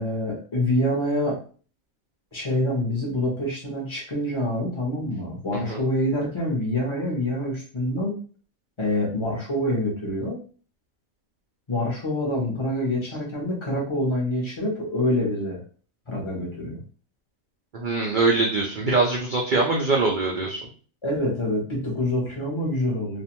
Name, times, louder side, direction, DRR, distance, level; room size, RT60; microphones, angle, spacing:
voice 1, 0.0-1.4 2.3-8.2 8.8-10.4 11.7-15.6 16.1-16.8 21.0-23.2, left 1 dB, 35° left, -2 dB, 0.5 m, -26 dB
voice 2, 17.7-20.6, right 3 dB, 85° right, -2 dB, 0.4 m, -23 dB
2.5 x 2.1 x 2.8 m, 0.40 s
omnidirectional pair, 1.5 m